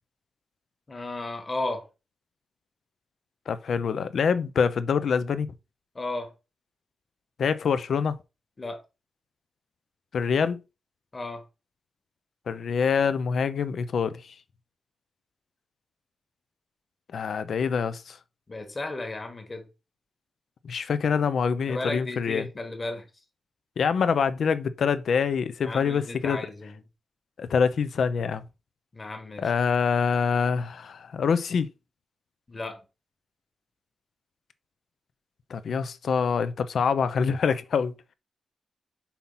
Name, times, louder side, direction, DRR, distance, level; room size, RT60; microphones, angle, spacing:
voice 1, 0.9-1.9 5.9-6.3 8.6-8.8 11.1-11.4 18.5-19.7 21.7-23.1 25.6-26.8 28.9-29.5 32.5-32.8, left 2 dB, 25° left, 1.5 m, -34 dB
voice 2, 3.5-5.5 7.4-8.2 10.1-10.6 12.5-14.3 17.1-18.2 20.6-22.5 23.8-26.4 27.4-28.4 29.4-31.7 35.5-37.9, left 6 dB, 65° left, 0.7 m, -25 dB
5.7 x 4.3 x 5.5 m
wide cardioid pair, 175°, 0 cm